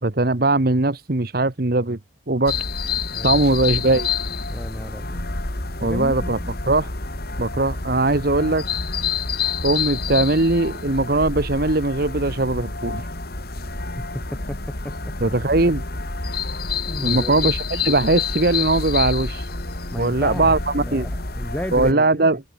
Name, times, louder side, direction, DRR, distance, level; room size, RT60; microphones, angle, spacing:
voice 1, 0.0-2.0 2.3-2.5 3.2-4.1 5.8-6.4 6.7-6.9 7.4-8.6 9.6-13.1 15.2-15.8 17.0-19.5 20.0-21.1 21.7-22.4, right 2 dB, 50° right, 1.2 m, -20 dB
sound 1, 2.4-21.9, left 4 dB, 55° left, 2.8 m, -28 dB
voice 2, 3.1-3.4 4.5-5.2 5.8-6.6 14.0-14.1 14.3-15.1 16.9-17.4 19.9-22.3, equal, 10° left, 1.9 m, -33 dB
head